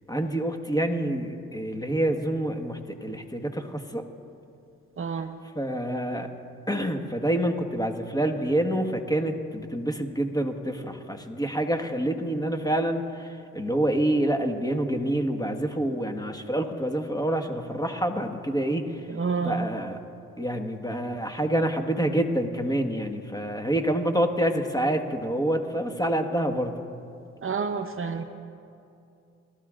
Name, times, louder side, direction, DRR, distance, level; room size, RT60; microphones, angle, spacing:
voice 1, 0.1-4.0 5.5-6.3 6.7-19.0 19.4-20.0 20.4-26.7, right 1 dB, 10° left, 5 dB, 1.5 m, -27 dB
voice 2, 5.0-5.3 19.1-19.7 27.4-28.2, right 5 dB, 40° right, 7 dB, 0.8 m, -29 dB
23.0 x 13.0 x 2.5 m, 2.6 s
supercardioid pair, 45°, 32 cm